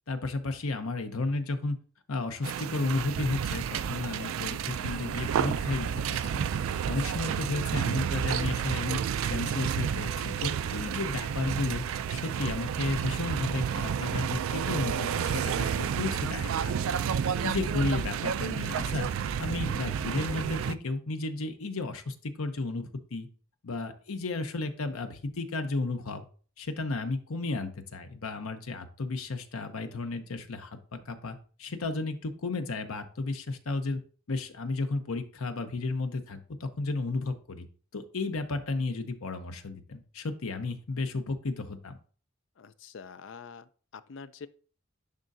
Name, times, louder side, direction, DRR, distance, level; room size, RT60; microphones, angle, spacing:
voice 1, 0.1-1.8 2.1-6.5 6.9-9.0 9.3-17.0 17.4-19.1 19.4-23.3 23.6-26.2 26.6-34.0 34.3-37.7 37.9-42.0, left 3 dB, 75° left, 0.8 m, -33 dB
sound 1, 2.4-20.7, right 8 dB, 70° right, 0.3 m, -30 dB
voice 2, 42.6-44.5, left 5 dB, 55° left, 0.4 m, -46 dB
10.5 x 3.7 x 2.6 m
head